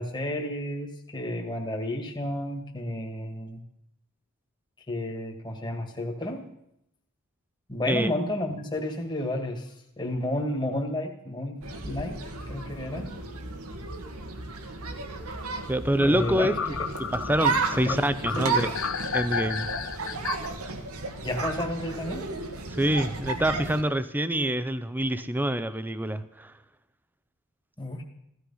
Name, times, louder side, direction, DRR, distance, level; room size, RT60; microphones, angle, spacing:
voice 1, 0.0-3.6 4.9-6.4 7.7-12.2 12.5-13.1 15.9-16.9 17.7-18.6 21.2-22.3 27.8-28.0, left 1 dB, 20° left, 2 dB, 2.0 m, -32 dB
sound 1, 11.6-23.8, right 4 dB, 85° right, 1.8 m, -33 dB
voice 2, 15.7-16.6 17.1-18.7 19.1-19.7 20.6-20.7 22.8-26.5, right 1 dB, 10° right, 13 dB, 0.6 m, -26 dB
sound 2, 16.0-20.5, left 6 dB, 65° left, 0.9 m, -32 dB
15.5 x 13.0 x 5.6 m, 0.78 s
head